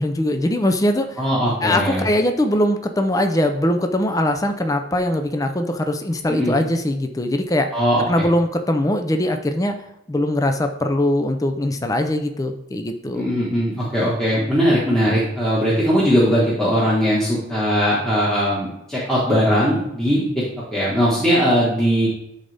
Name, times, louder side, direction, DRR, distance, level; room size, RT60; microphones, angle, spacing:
voice 1, 0.0-1.2 1.6-7.7 8.1-9.8 10.1-13.3, left 1 dB, 20° left, 6 dB, 0.5 m, -21 dB
voice 2, 1.2-2.0 6.3-6.6 7.7-8.2 13.1-20.4 20.7-22.1, equal, 5° left, -8 dB, 1.5 m, -19 dB
11.0 x 4.0 x 3.4 m, 0.82 s
head